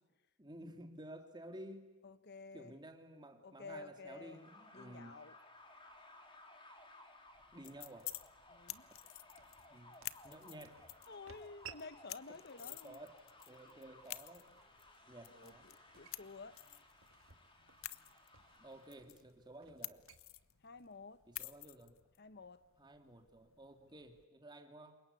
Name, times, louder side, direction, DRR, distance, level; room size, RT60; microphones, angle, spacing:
voice 1, 0.4-1.9 2.5-5.2 7.5-8.1 9.7-10.0 10.2-10.9 12.3-13.2 13.5-14.5 15.1-15.7 18.6-20.1 21.3-21.9 22.8-25.0, right 1 dB, 20° right, 5 dB, 3.0 m, -53 dB
voice 2, 2.0-2.7 3.4-4.4 4.7-5.4 8.5-8.9 11.1-13.0 15.3-16.6 20.6-21.2 22.2-22.6, left 4 dB, 55° left, 13 dB, 1.0 m, -52 dB
sound 1, 4.2-19.1, left 2 dB, 25° left, 3.7 m, -61 dB
sound 2, 5.6-21.7, right 7 dB, 80° right, 1.8 m, -63 dB
sound 3, 7.3-24.2, left 15 dB, 90° left, 0.9 m, -52 dB
28.0 x 24.0 x 8.5 m, 1.1 s
head